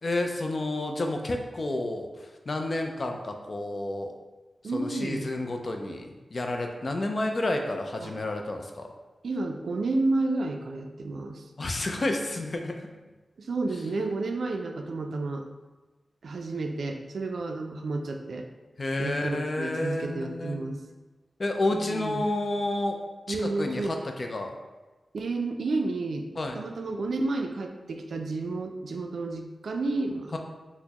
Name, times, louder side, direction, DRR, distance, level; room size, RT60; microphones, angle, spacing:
voice 1, 0.0-2.1 2.5-4.1 4.7-8.9 11.6-12.9 18.8-20.6 21.4-23.0 23.3-24.5 26.4-26.6 30.3-30.4, left 2 dB, 50° left, 4 dB, 0.4 m, -30 dB
voice 2, 4.6-5.3 8.0-8.2 9.2-11.5 13.4-15.5 16.2-18.5 19.0-20.8 21.7-22.2 23.3-24.0 25.1-26.3 26.5-30.3, right 2 dB, 80° right, 4 dB, 0.3 m, -31 dB
4.2 x 2.1 x 2.8 m, 1.2 s
wide cardioid pair, 70°, 0 cm